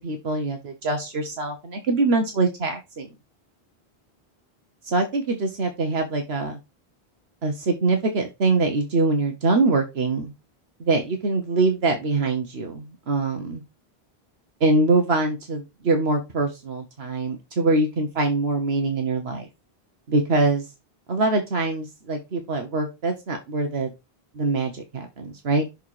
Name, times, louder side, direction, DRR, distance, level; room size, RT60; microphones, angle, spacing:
voice 1, 0.0-3.1 4.8-6.6 7.4-10.3 10.8-13.6 14.6-19.5 20.1-20.7 21.1-23.9 24.3-25.6, right 3 dB, 80° right, 5 dB, 1.4 m, -23 dB
6.6 x 4.2 x 4.8 m, 0.24 s
omnidirectional pair, 1.0 m